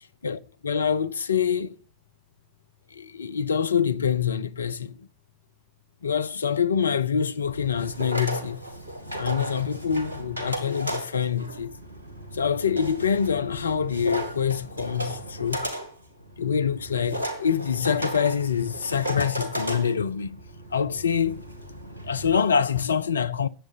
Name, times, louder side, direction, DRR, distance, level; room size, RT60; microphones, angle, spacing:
voice 1, 0.2-1.8 2.9-5.1 6.0-8.6 9.2-11.8 12.3-15.7 16.4-20.4 20.7-21.4 22.0-23.5, left 7 dB, 85° left, 0.5 m, -25 dB
sound 1, 7.4-22.4, equal, 90° right, 1.7 m, -35 dB
10.0 x 7.5 x 7.7 m
figure-of-eight pair, 75°, 0 cm